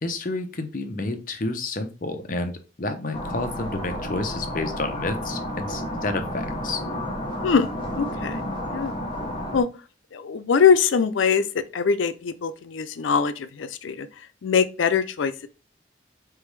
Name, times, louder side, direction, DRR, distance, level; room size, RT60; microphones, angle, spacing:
voice 1, 0.0-2.5 2.8-6.8, left 2 dB, 45° left, 0.6 m, -30 dB
sound 1, 3.1-9.6, equal, 30° left, 1.0 m, -31 dB
voice 2, 8.0-9.0 9.5-9.7 10.1-14.1 14.4-15.5, left 6 dB, 90° left, 0.4 m, -22 dB
4.0 x 3.4 x 3.2 m
head